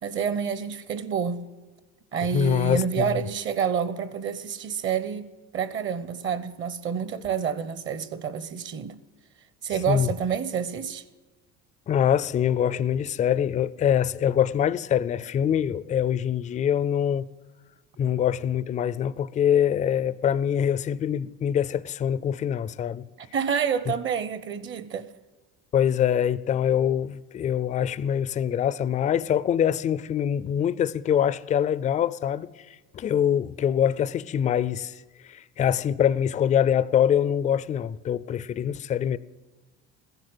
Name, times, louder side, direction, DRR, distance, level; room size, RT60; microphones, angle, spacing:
voice 1, 0.0-1.5 2.1-5.3 5.5-8.9 9.6-11.0 23.2-25.1, right 7 dB, 40° right, 0.8 m, -28 dB
voice 2, 2.3-3.2 9.9-10.1 11.9-17.3 18.0-23.1 25.7-39.2, left 9 dB, 25° left, 0.4 m, -24 dB
15.5 x 11.0 x 7.9 m
cardioid pair, 150°, 31 cm